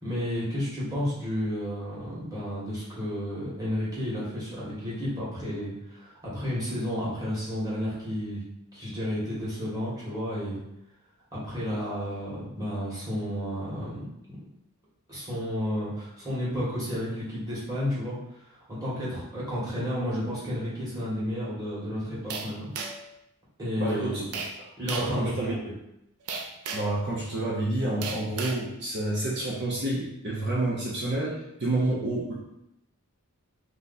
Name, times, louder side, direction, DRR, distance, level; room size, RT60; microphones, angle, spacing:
voice 1, 0.0-8.4 8.7-10.6 11.3-14.0 15.1-18.2 18.5-22.7 23.6-24.2 24.8-25.7, equal, 15° right, -9 dB, 1.6 m, -32 dB
sound 1, 22.3-23.1 24.3-24.6 24.9-25.2 26.3-27.0 28.0-28.6, right 4 dB, 80° right, 0.5 m, -34 dB
voice 2, 23.8-24.2 25.0-25.5 26.7-32.3, right 2 dB, 50° right, -5 dB, 0.8 m, -29 dB
3.5 x 3.1 x 4.1 m, 0.84 s
head